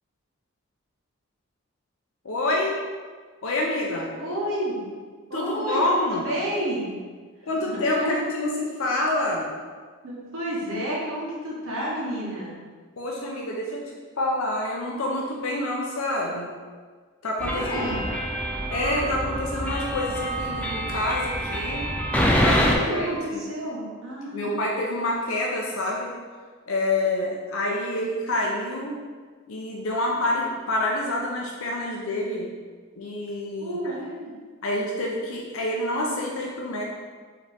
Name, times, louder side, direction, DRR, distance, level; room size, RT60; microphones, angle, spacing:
voice 1, 2.2-2.8 3.4-4.1 5.3-6.2 7.5-9.5 13.0-16.5 17.2-18.1 18.7-21.9 22.1-23.4 24.3-26.1 26.7-29.0 29.5-32.6 33.0-33.9 34.6-36.8, left 1 dB, 75° left, -2 dB, 0.6 m, -27 dB
voice 2, 4.2-4.9 5.3-7.0 7.6-8.1 10.0-12.5 17.4-18.0 22.8-24.6 33.6-34.3, right 1 dB, 70° right, -5 dB, 1.2 m, -30 dB
sound 1, 17.4-22.7, equal, 5° left, 0.3 m, -26 dB
4.8 x 3.0 x 3.5 m, 1.5 s
head